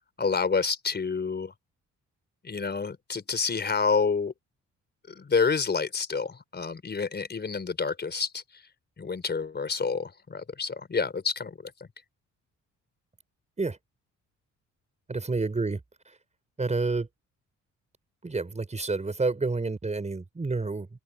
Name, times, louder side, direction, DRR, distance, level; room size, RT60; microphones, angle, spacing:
voice 1, 0.2-1.5 2.4-4.3 5.1-8.6 9.0-11.7, left 5 dB, 35° left, 4.5 m, -28 dB
voice 2, 15.1-15.8 16.1-16.2 16.6-17.1 18.2-20.9, right 3 dB, 25° right, 4.9 m, -29 dB
cardioid pair, 90°, 30 cm